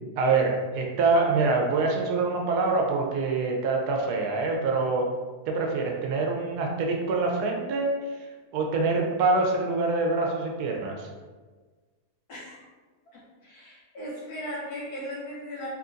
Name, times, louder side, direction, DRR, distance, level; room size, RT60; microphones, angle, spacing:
voice 1, 0.2-5.1 5.5-7.9 8.5-11.1, right 3 dB, 80° right, 1 dB, 1.1 m, -25 dB
voice 2, 12.3-12.6 13.1-15.7, equal, 70° left, -6 dB, 1.5 m, -37 dB
3.8 x 2.6 x 2.5 m, 1.4 s
omnidirectional pair, 1.7 m